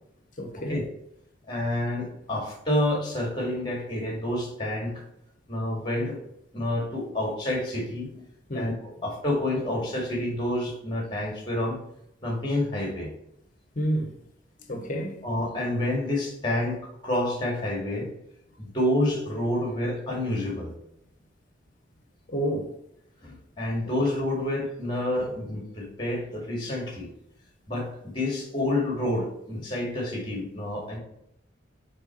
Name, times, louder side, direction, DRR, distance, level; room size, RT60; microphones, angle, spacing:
voice 1, 0.4-0.8 8.5-8.7 13.8-14.1 14.7-15.2 22.3-22.7, right 1 dB, 45° left, 1.1 m, -29 dB
voice 2, 1.5-5.0 5.5-6.2 6.5-8.2 8.5-11.8 12.2-13.1 15.2-18.1 18.6-20.7 23.2-27.1 27.7-31.0, left 1 dB, 25° left, 2.1 m, -28 dB
8.1 x 3.5 x 4.4 m
head